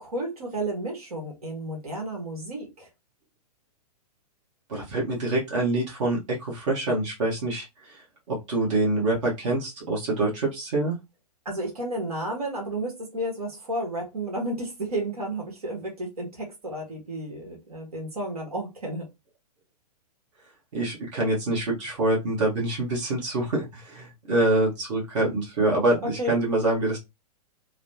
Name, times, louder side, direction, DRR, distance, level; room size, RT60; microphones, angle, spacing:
voice 1, 0.0-2.9 11.4-19.1 26.2-26.3, right 1 dB, 65° right, 1.2 m, -32 dB
voice 2, 4.7-8.0 8.3-11.0 20.7-27.0, right 2 dB, 50° right, 1.2 m, -25 dB
3.1 x 2.0 x 2.7 m
figure-of-eight pair, 110°, 20 cm